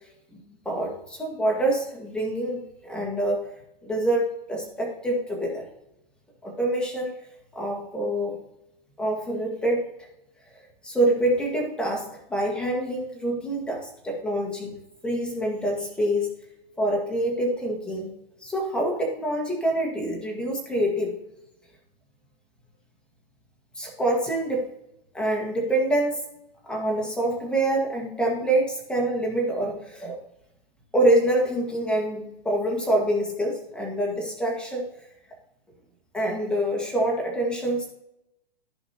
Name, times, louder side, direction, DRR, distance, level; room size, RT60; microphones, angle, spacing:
voice 1, 0.3-3.5 3.8-5.7 6.4-7.1 7.5-8.4 9.0-9.9 10.8-14.8 15.0-16.3 16.8-18.1 18.4-21.1 23.8-24.7 25.1-26.2 26.6-30.2 30.9-34.9 36.1-37.9, right 1 dB, 5° left, -1 dB, 1.7 m, -26 dB
14.5 x 5.1 x 2.9 m, 0.86 s
hypercardioid pair, 150°, 30 cm